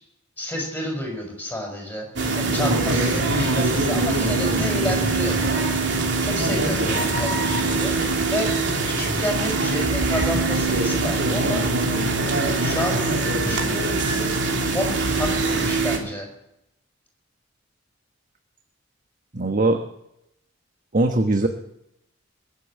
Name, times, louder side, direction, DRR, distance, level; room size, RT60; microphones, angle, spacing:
voice 1, 0.4-2.1 2.3-5.5 6.2-14.3 14.7-16.3, left 1 dB, 10° left, 0 dB, 6.1 m, -30 dB
sound 1, 2.2-16.0, right 2 dB, 65° right, 3.1 m, -23 dB
voice 2, 19.3-19.8 20.9-21.5, right 2 dB, 45° right, 5 dB, 1.2 m, -20 dB
21.5 x 8.6 x 7.6 m, 0.80 s
head